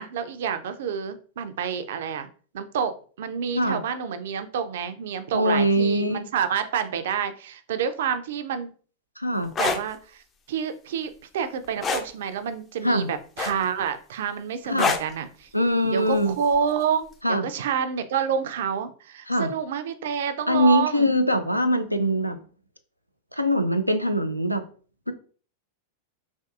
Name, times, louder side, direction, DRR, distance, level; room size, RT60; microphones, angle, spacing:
voice 1, 0.0-2.3 2.5-8.7 9.6-15.5 15.9-21.1, right 7 dB, 55° right, 10 dB, 0.4 m, -28 dB
voice 2, 5.3-6.3 9.2-9.5 12.8-13.1 14.7-14.9 15.5-16.4 17.2-17.4 19.3-19.5 20.5-22.4 23.3-24.7 25.1-25.2, equal, 90° left, 9 dB, 0.3 m, -22 dB
sound 1, 9.4-9.8 11.8-12.1 13.4-13.8 14.8-15.1 16.5-16.7, left 5 dB, 25° left, 0.4 m, -24 dB
3.5 x 2.5 x 2.4 m, 0.41 s
figure-of-eight pair, 90°, 0 cm